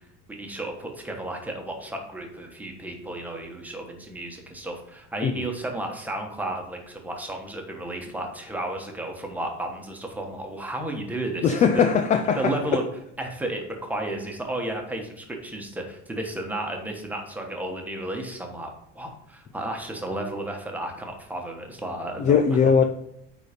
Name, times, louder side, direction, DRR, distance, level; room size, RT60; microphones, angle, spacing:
voice 1, 0.3-11.9 12.4-12.8 13.2-22.4, right 1 dB, 5° right, 1.2 m, -33 dB
voice 2, 11.4-12.5 22.2-22.8, left 6 dB, 25° left, 0.4 m, -19 dB
9.3 x 4.1 x 5.1 m
cardioid pair, 150°, 29 cm